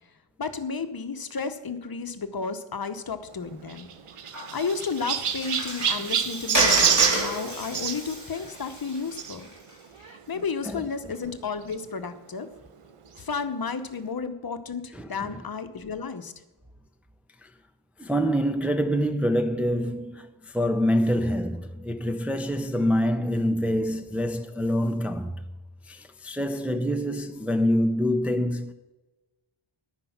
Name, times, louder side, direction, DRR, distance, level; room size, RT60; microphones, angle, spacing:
voice 1, 0.4-3.9 4.5-9.5 10.0-12.5 13.2-16.3, left 5 dB, 45° left, 0.9 m, -32 dB
Chirp tweet, 3.7-8.0 9.2-9.3 10.0-10.1 10.4-10.5 11.7-11.8, right 8 dB, 90° right, 0.9 m, -26 dB
Water, 4.3-9.7, right 1 dB, 35° right, 4.0 m, -31 dB
voice 2, 14.9-15.3 17.4-17.5 18.0-25.4 25.9-28.7, equal, 5° right, 0.6 m, -26 dB
10.5 x 9.7 x 5.9 m
wide cardioid pair, 130°, 50 cm